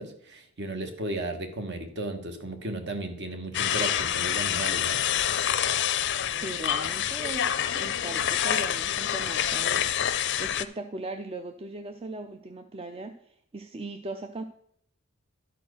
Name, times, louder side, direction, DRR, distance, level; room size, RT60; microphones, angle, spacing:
voice 1, 0.0-5.0, right 1 dB, 50° right, 6 dB, 1.3 m, -34 dB
sound 1, 3.5-10.6, left 10 dB, 55° left, 0.5 m, -27 dB
voice 2, 6.3-9.9 10.4-14.4, right 2 dB, 25° right, 7 dB, 0.4 m, -39 dB
11.5 x 4.5 x 6.3 m, 0.68 s
head